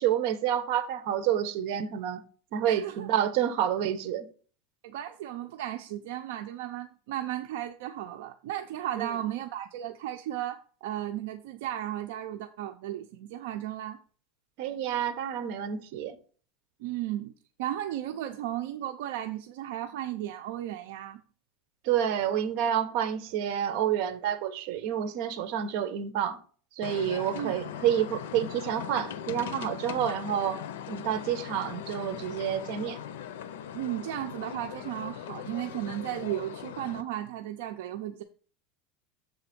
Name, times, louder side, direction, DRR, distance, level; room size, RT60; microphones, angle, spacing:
voice 1, 0.0-2.2 2.5-4.3 9.0-9.1 14.6-16.2 21.8-26.4 26.8-30.6 30.9-33.0, right 10 dB, 55° right, 1.0 m, -29 dB
voice 2, 2.7-3.1 4.8-14.0 16.8-17.3 17.6-21.2 27.3-27.5 33.7-38.2, right 12 dB, 70° right, 0.6 m, -35 dB
sound 1, 26.8-37.0, left 9 dB, 85° left, 0.7 m, -40 dB
7.0 x 3.9 x 5.9 m
supercardioid pair, 155°, 0 cm